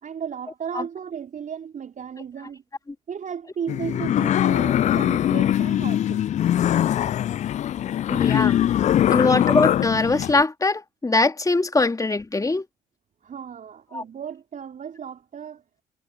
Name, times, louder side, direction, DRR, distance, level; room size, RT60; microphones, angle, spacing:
voice 1, 0.0-2.6 3.1-6.2 13.2-15.6, right 7 dB, 45° right, 4.7 m, -35 dB
sound 1, 3.7-10.4, left 11 dB, 45° left, 0.4 m, -22 dB
voice 2, 8.1-8.6 9.1-12.7 13.9-14.0, left 3 dB, 20° left, 2.2 m, -22 dB
figure-of-eight pair, 40°, 18 cm